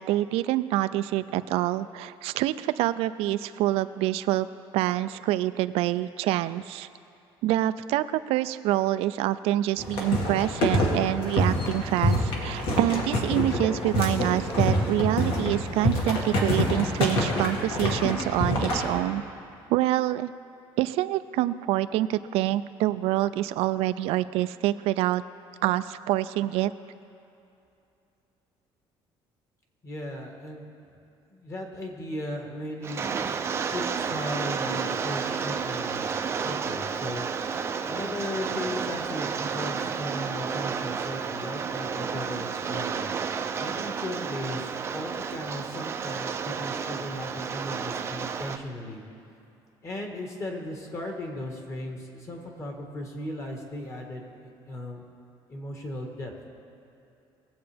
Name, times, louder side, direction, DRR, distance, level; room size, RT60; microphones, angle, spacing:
voice 1, 0.0-4.5 4.7-6.9 7.4-19.2 19.7-20.3 20.8-25.2 25.6-26.7, right 14 dB, 85° right, 13 dB, 0.3 m, -26 dB
sound 1, 9.8-19.0, left 1 dB, 65° left, 1.9 m, -26 dB
voice 2, 29.8-30.7 31.3-33.2 33.5-36.2 36.4-37.6 37.9-43.1 43.6-49.0 49.8-55.0 55.5-56.3, left 1 dB, 30° left, 1 dB, 1.5 m, -37 dB
Rain, 32.8-48.6, right 6 dB, 25° right, 0.4 m, -31 dB
20.0 x 7.9 x 3.4 m, 2.7 s
cardioid pair, 160°, 10 cm